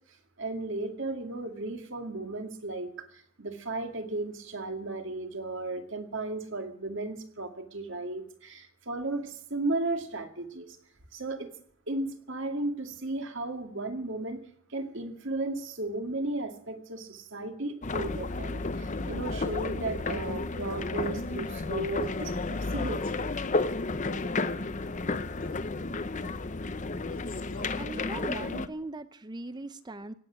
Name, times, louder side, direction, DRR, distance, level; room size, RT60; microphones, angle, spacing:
voice 1, 0.4-10.8 11.1-11.5 11.9-14.4 14.7-23.0, right 2 dB, 60° right, 2.2 m, -35 dB
sound 1, 17.8-28.7, left 3 dB, 35° left, 0.7 m, -32 dB
Male speech man speaking, 22.0-22.3 23.0-23.3 24.0-24.4 25.4-25.7 27.0-27.8, left 2 dB, 70° left, 2.1 m, -48 dB
voice 2, 27.8-30.1, right 2 dB, 20° right, 0.6 m, -39 dB
17.0 x 8.4 x 9.8 m
head